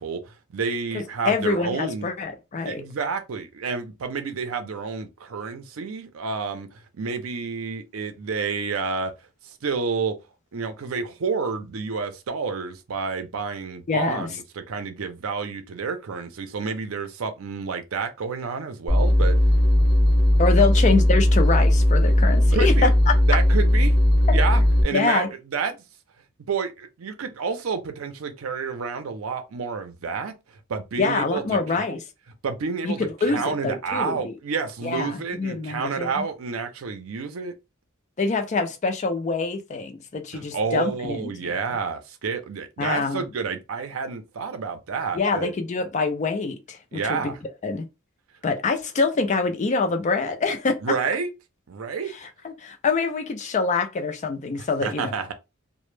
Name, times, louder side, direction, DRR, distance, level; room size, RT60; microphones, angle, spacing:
voice 1, 0.0-2.1 2.7-9.1 9.4-10.1 10.5-19.4 20.5-20.7 22.5-22.9 23.3-24.0 24.3-25.8 26.5-30.3 30.7-31.9 32.4-37.5 40.3-45.5 46.9-47.4 50.8-51.3 51.7-52.1 54.8-55.3, right 5 dB, 80° right, 0.5 m, -29 dB
voice 2, 0.9-2.8 13.9-14.3 20.4-23.1 24.3-24.4 24.9-25.3 31.0-32.0 32.8-34.3 34.8-36.2 38.2-41.5 42.8-43.3 45.1-47.3 47.6-47.8 48.4-50.8 52.4-55.1, left 4 dB, 35° left, 0.4 m, -25 dB
sound 1, 18.9-24.8, left 1 dB, 45° right, 0.8 m, -18 dB
2.0 x 2.0 x 3.1 m
head